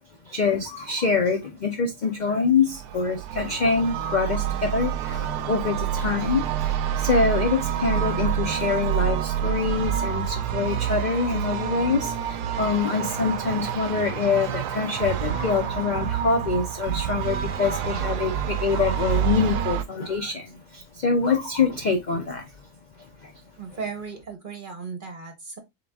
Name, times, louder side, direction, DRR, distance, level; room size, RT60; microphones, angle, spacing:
voice 1, 0.3-22.5 23.0-23.3, left 4 dB, 60° left, 0.5 m, -25 dB
sound 1, 2.7-19.8, right 10 dB, 90° right, 1.1 m, -28 dB
voice 2, 23.6-25.6, right 5 dB, 40° right, 0.8 m, -36 dB
3.8 x 3.7 x 3.4 m
omnidirectional pair, 1.6 m